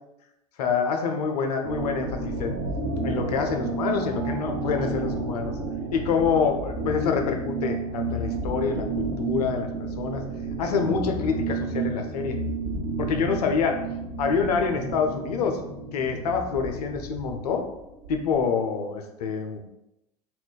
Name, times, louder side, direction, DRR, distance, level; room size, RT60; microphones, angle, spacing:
voice 1, 0.6-2.6 3.0-5.5 5.9-10.2 10.6-12.4 13.0-13.8 14.2-15.6 15.9-17.6 18.1-19.6, left 5 dB, 75° left, 4 dB, 0.5 m, -26 dB
sound 1, 1.6-18.4, right 3 dB, 50° right, 0.7 m, -31 dB
2.4 x 2.1 x 3.7 m, 0.87 s
hypercardioid pair, 80°, 20 cm